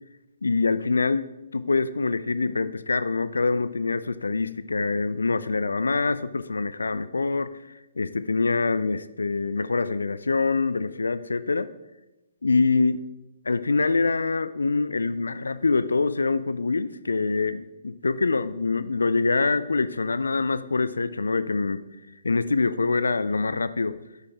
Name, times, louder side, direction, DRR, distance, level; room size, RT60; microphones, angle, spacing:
voice 1, 0.4-11.7 12.4-13.1 13.5-21.8 22.2-24.0, left 3 dB, 75° left, 15 dB, 0.4 m, -25 dB
10.0 x 8.1 x 3.5 m, 0.98 s
figure-of-eight pair, 130°, 0 cm